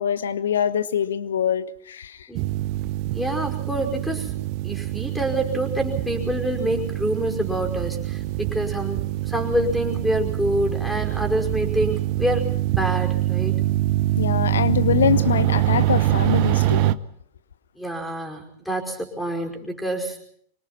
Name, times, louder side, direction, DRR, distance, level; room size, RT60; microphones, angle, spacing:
voice 1, 0.0-2.3 14.2-17.0, left 8 dB, 65° left, 1.1 m, -24 dB
sound 1, 2.3-16.9, right 15 dB, 45° right, 0.8 m, -24 dB
voice 2, 3.1-4.3 4.6-12.5 12.7-13.6 17.8-20.2, equal, ahead, 5.3 m, -26 dB
27.0 x 24.5 x 4.4 m
figure-of-eight pair, 90°, 0 cm